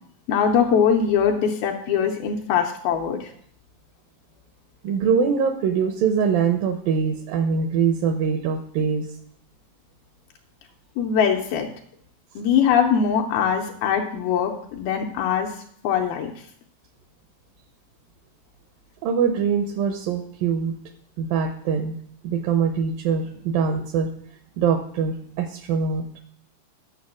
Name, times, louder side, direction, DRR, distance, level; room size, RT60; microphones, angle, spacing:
voice 1, 0.3-3.3 11.0-11.7 12.4-15.5 15.8-16.3, left 7 dB, 75° left, 2 dB, 2.4 m, -22 dB
voice 2, 4.8-9.1 19.0-20.8 21.2-22.0 22.2-24.1 24.6-26.0, right 6 dB, 80° right, 7 dB, 2.2 m, -23 dB
9.6 x 6.6 x 6.1 m, 0.64 s
omnidirectional pair, 4.8 m